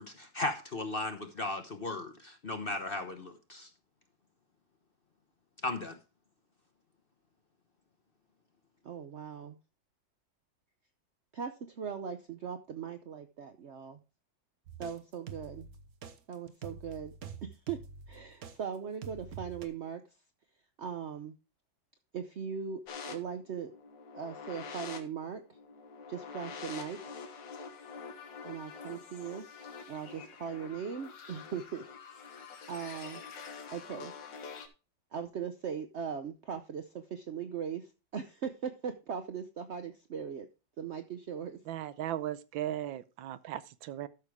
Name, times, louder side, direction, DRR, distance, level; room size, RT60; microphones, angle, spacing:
voice 1, 0.0-3.7 5.6-6.0, left 2 dB, 40° left, 0.9 m, -36 dB
voice 2, 8.8-9.6 11.3-14.0 14.8-15.7 16.3-17.1 17.4-17.8 18.1-20.0 20.8-21.3 22.1-22.8 23.1-23.7 24.1-25.4 26.1-27.0 28.4-29.5 29.9-31.8 32.3-33.2 33.7-34.1 35.1-40.5 40.8-41.6, right 7 dB, 70° right, 0.6 m, -39 dB
sound 1, 14.7-18.6 19.0-19.7, right 6 dB, 55° right, 1.3 m, -46 dB
sound 2, 22.9-34.7, left 5 dB, 70° left, 1.9 m, -46 dB
voice 3, 41.7-44.1, right 12 dB, 85° right, 1.4 m, -37 dB
13.0 x 6.6 x 3.5 m
omnidirectional pair, 2.1 m